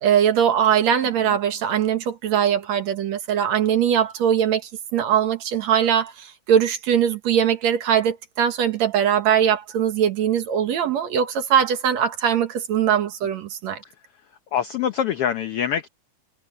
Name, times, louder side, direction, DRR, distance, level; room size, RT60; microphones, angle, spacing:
voice 1, 0.0-13.8, right 9 dB, 60° right, 2.5 m, -21 dB
voice 2, 14.5-15.9, left 9 dB, 85° left, 1.2 m, -24 dB
omnidirectional pair, 3.8 m